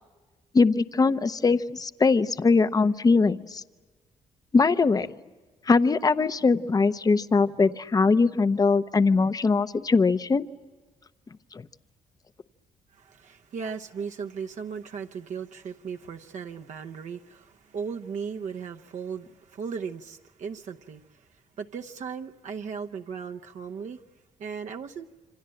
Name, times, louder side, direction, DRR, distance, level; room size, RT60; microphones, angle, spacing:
voice 1, 0.5-3.6 4.5-5.1 5.7-10.5 11.5-11.6, left 4 dB, 25° left, 0.8 m, -21 dB
voice 2, 12.9-21.3 21.6-24.0 24.4-25.1, right 6 dB, 60° right, 0.9 m, -37 dB
27.5 x 25.5 x 7.7 m
cardioid pair, 115°, 14 cm